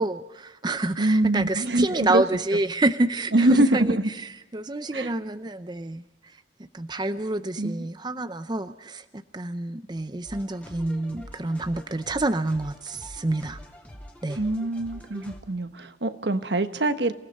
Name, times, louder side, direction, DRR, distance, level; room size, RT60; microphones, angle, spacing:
voice 1, 0.0-6.0 6.7-9.0 9.3-13.6 14.2-14.4, right 2 dB, 25° right, 11 dB, 0.6 m, -27 dB
voice 2, 1.0-2.2 3.3-4.1 4.9-5.1 7.6-7.9 14.4-17.1, right 2 dB, 70° right, 10 dB, 1.3 m, -24 dB
sound 1, 10.2-15.4, equal, 10° left, 2.6 m, -45 dB
27.5 x 17.0 x 5.5 m, 1.0 s
head